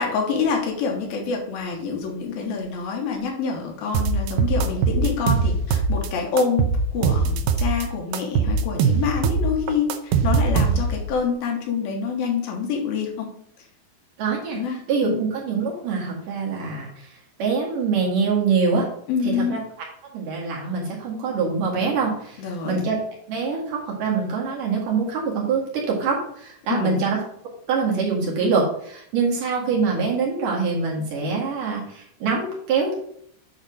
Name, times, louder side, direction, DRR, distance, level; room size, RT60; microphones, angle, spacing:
voice 1, 0.0-13.3 14.5-15.2 19.1-19.6 22.4-22.8 26.7-27.0, left 5 dB, 75° left, 1 dB, 3.0 m, -26 dB
sound 1, 3.9-6.1 6.4-7.8 8.1-11.1, right 5 dB, 80° right, 2.3 m, -21 dB
voice 2, 14.2-14.6 14.9-16.9 17.4-18.9 19.2-19.6 20.1-23.0 23.3-27.2 27.7-33.0, right 5 dB, 60° right, -3 dB, 3.3 m, -24 dB
8.3 x 4.0 x 6.3 m, 0.67 s
omnidirectional pair, 4.5 m